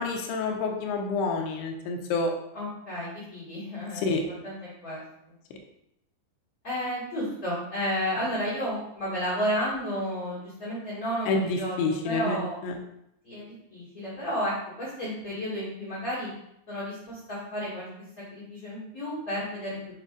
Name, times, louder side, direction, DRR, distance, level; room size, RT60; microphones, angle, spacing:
voice 1, 0.0-2.3 4.0-4.2 11.3-12.7, left 3 dB, 80° left, 2 dB, 2.4 m, -28 dB
voice 2, 2.5-5.0 6.6-12.6 13.2-16.3 16.7-17.9 18.2-19.8, equal, 65° left, -9 dB, 0.8 m, -32 dB
7.7 x 5.3 x 2.5 m, 0.79 s
omnidirectional pair, 5.4 m